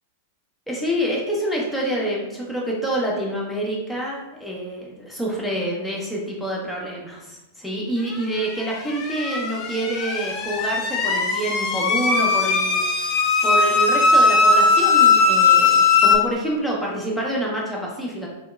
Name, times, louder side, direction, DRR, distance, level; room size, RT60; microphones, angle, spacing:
voice 1, 0.7-18.3, right 1 dB, ahead, -4 dB, 0.8 m, -27 dB
sound 1, 8.6-16.2, left 4 dB, 35° left, 0.5 m, -18 dB
3.0 x 2.8 x 2.3 m, 0.98 s
figure-of-eight pair, 100°, 0 cm